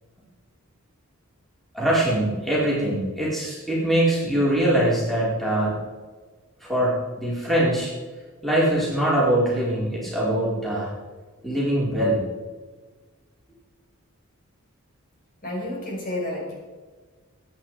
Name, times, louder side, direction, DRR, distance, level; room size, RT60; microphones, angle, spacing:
voice 1, 1.7-5.8 6.6-7.9 8.4-10.9 11.4-12.3, right 1 dB, ahead, -7 dB, 4.7 m, -23 dB
voice 2, 15.4-16.5, left 1 dB, 40° left, -2 dB, 5.6 m, -30 dB
23.5 x 9.6 x 5.0 m, 1.4 s
head